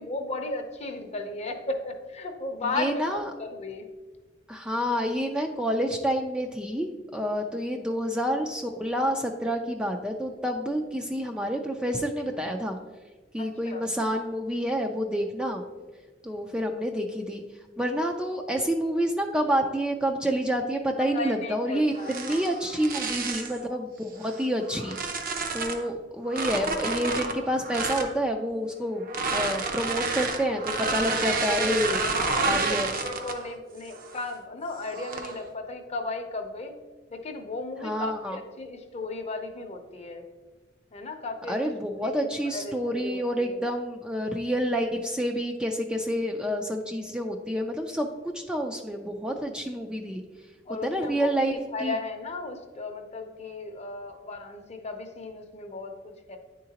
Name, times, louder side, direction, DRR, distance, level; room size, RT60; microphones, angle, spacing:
voice 1, 0.0-3.9 13.4-13.8 21.1-22.5 31.1-32.8 33.0-36.7 37.1-40.2 40.9-41.6 41.9-43.6 50.7-51.5 51.7-56.4, left 3 dB, 35° left, 5 dB, 0.7 m, -35 dB
voice 2, 2.7-3.3 4.5-12.8 13.3-15.6 16.2-17.4 17.8-25.0 25.5-29.1 29.3-32.1 32.4-32.9 37.8-38.4 41.5-48.1 48.3-50.2 50.8-52.0, equal, 5° right, 3 dB, 0.3 m, -28 dB
sound 1, 22.0-23.6 24.2-25.9 26.3-28.1 29.0-33.5 33.9-34.2 34.9-35.4, right 4 dB, 50° right, 0.6 m, -30 dB
9.8 x 3.8 x 2.8 m, 1.3 s
head